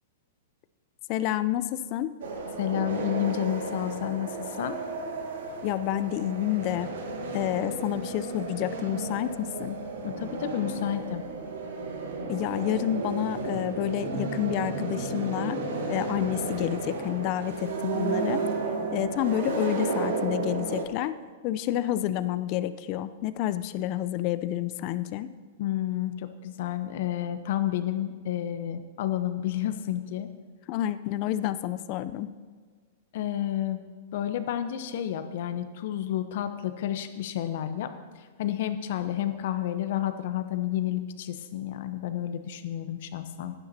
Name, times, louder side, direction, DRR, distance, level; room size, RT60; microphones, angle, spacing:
voice 1, 1.1-2.1 5.6-6.9 7.3-9.8 12.3-15.6 15.9-18.4 18.9-21.1 21.4-25.3 30.7-32.3, left 13 dB, 45° left, 13 dB, 0.5 m, -29 dB
sound 1, 2.2-20.9, right 4 dB, 70° right, 1.4 m, -33 dB
voice 2, 2.6-4.8 10.0-11.2 25.6-30.3 33.1-33.8 34.1-37.9 38.4-43.5, left 11 dB, 60° left, 10 dB, 0.9 m, -30 dB
15.5 x 10.5 x 2.8 m, 1.5 s
hypercardioid pair, 115°, 0 cm